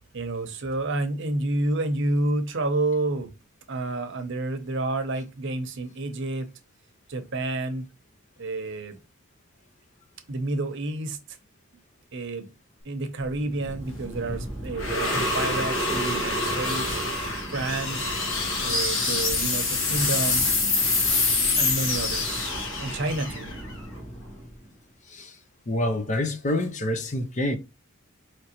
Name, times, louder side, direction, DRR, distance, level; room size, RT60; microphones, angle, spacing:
voice 1, 0.1-3.3 3.7-6.5 7.1-7.9 8.4-9.0 10.3-11.2 12.1-12.5 12.8-17.0 17.5-18.1 18.6-20.5 21.6-22.4 22.8-23.5, right 2 dB, 60° right, 0.8 m, -29 dB
sound 1, 13.3-24.5, left 3 dB, 65° left, 1.4 m, -26 dB
voice 2, 25.7-27.6, left 1 dB, 35° left, 0.6 m, -27 dB
5.1 x 3.1 x 2.9 m
head